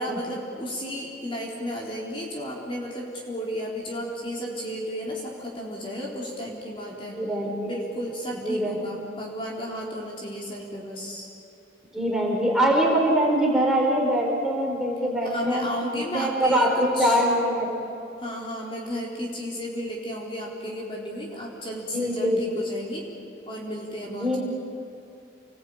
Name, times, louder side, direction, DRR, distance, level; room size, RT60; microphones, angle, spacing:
voice 1, 0.0-7.2 7.6-11.3 15.2-17.2 18.2-23.1 23.5-24.4, equal, 30° left, -3 dB, 3.9 m, -33 dB
voice 2, 7.1-7.7 8.3-9.0 11.9-17.8 21.9-22.6 23.0-23.1 24.1-24.4, equal, 5° right, -2 dB, 4.7 m, -24 dB
29.0 x 21.0 x 8.8 m, 2.8 s
head